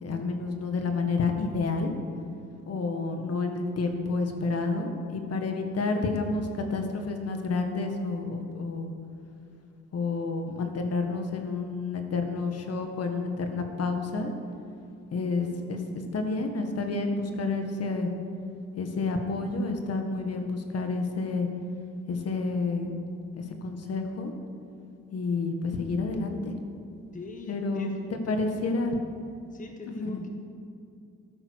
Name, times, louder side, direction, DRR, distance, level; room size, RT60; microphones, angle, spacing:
voice 1, 0.0-1.9 2.7-8.9 9.9-14.3 15.1-15.8 16.1-18.1 18.7-21.5 22.1-22.9 23.3-24.3 25.1-26.5 27.5-29.0 29.9-30.2, left 3 dB, 55° left, 5 dB, 1.6 m, -29 dB
voice 2, 27.1-28.7 29.5-30.3, left 3 dB, 25° left, 3 dB, 1.3 m, -42 dB
13.0 x 9.2 x 6.4 m, 2.5 s
cardioid pair, 90°, 30 cm